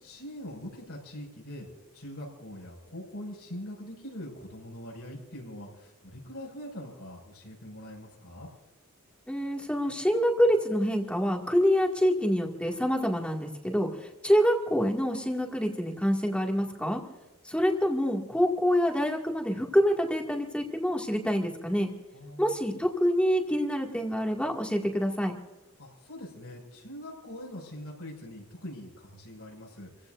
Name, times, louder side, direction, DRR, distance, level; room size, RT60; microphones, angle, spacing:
voice 1, 0.0-1.7 1.9-8.5 22.1-22.7 25.8-30.1, left 1 dB, 75° left, -3 dB, 6.1 m, -43 dB
voice 2, 9.3-17.0 17.5-21.9 22.4-25.4, equal, 5° left, 0 dB, 2.2 m, -26 dB
29.0 x 16.0 x 2.7 m, 1.0 s
head